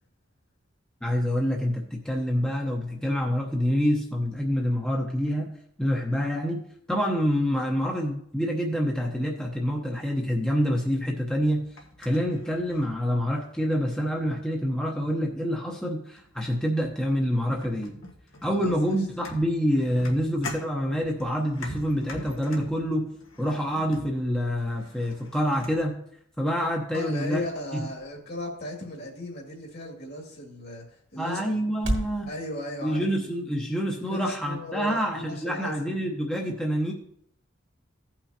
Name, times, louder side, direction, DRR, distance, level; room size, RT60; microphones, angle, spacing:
voice 1, 1.0-5.5 5.8-6.6 6.9-11.6 12.0-17.9 18.4-23.1 23.4-26.0 26.4-27.4 27.7-27.9 31.2-32.3 32.8-36.9, equal, 5° left, -1 dB, 0.8 m, -27 dB
sound 1, 11.3-13.5 14.0-14.5 15.5-15.6 16.2-16.4 16.7-25.9, left 1 dB, 90° left, 1.4 m, -44 dB
voice 2, 18.5-19.0 26.9-31.4 32.3-33.1 34.0-36.0, left 1 dB, 55° left, 1 dB, 2.1 m, -36 dB
sound 2, 25.9-32.2, right 1 dB, 70° right, 2.3 m, -38 dB
16.0 x 5.9 x 2.8 m, 0.69 s
head